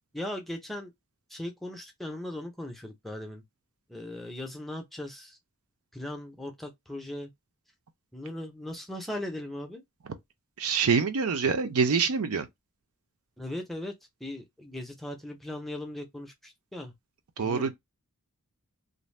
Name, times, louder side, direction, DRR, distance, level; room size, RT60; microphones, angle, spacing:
voice 1, 0.1-0.9 1.3-3.4 3.9-5.4 5.9-7.3 8.1-9.8 13.4-13.9 14.2-16.9 17.4-17.7, left 1 dB, ahead, 0.5 m, -38 dB
voice 2, 10.6-12.5 17.4-17.7, right 5 dB, 70° right, 0.5 m, -25 dB
2.5 x 2.1 x 3.1 m
head